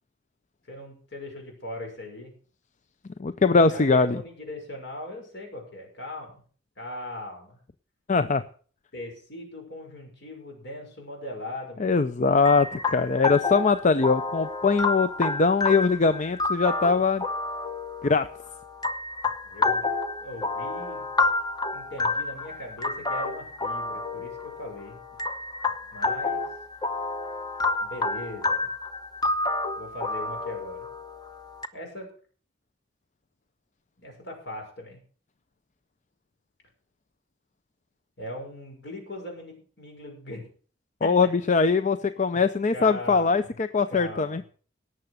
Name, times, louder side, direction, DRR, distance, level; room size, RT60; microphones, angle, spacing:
voice 1, 0.7-2.3 3.6-6.4 6.8-7.6 8.9-12.0 19.4-19.9 20.2-21.1 21.7-25.0 25.9-26.4 27.8-28.7 29.8-30.9 31.7-32.1 34.0-35.0 38.2-40.4 41.0-41.1 42.7-43.6 43.9-44.4, left 1 dB, 65° left, 2 dB, 5.9 m, -39 dB
voice 2, 3.2-4.2 8.1-8.4 11.8-17.2 18.0-18.3 41.0-44.4, left 4 dB, 40° left, 11 dB, 0.6 m, -22 dB
sound 1, 12.4-31.7, left 3 dB, 20° left, 0.9 m, -29 dB
18.0 x 7.0 x 6.5 m, 0.43 s
head